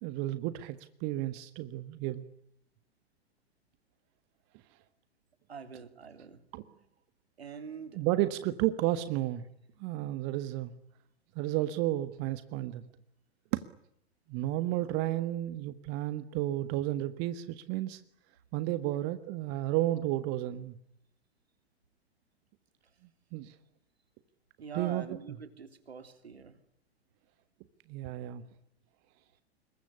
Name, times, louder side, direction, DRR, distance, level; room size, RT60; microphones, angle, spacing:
voice 1, 0.0-2.2 6.5-6.6 7.9-9.4 9.8-10.7 11.3-12.8 13.5-13.6 14.3-18.0 18.5-20.7 23.3-23.5 24.7-25.0 27.9-28.4, right 15 dB, 35° right, 12 dB, 1.6 m, -32 dB
voice 2, 5.5-6.4 7.4-8.0 18.8-19.1 24.6-26.6, right 6 dB, 70° right, 10 dB, 3.5 m, -45 dB
27.0 x 22.5 x 9.9 m, 0.74 s
figure-of-eight pair, 105°, 32 cm